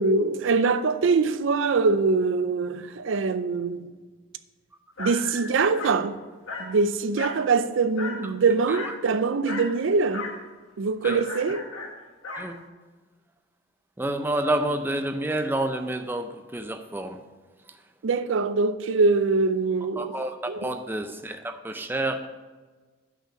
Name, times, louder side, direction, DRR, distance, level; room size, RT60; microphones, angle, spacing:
voice 1, 0.0-3.9 5.0-6.2 6.6-10.3 10.8-11.7 18.0-20.1 20.5-20.7, right 4 dB, 65° right, 0.4 m, -23 dB
Dog, 5.0-5.2 5.7-6.0 6.5-6.7 7.2-7.4 8.0-8.2 8.7-9.0 9.4-9.7 10.1-10.4 11.0-12.5, left 3 dB, 85° left, 1.6 m, -35 dB
voice 2, 5.0-5.5 8.2-8.3 8.7-8.9 11.0-11.2 12.4-12.6 14.0-17.2 17.7-17.8 20.0-22.3, right 1 dB, 10° right, 0.4 m, -29 dB
5.9 x 5.9 x 7.0 m
head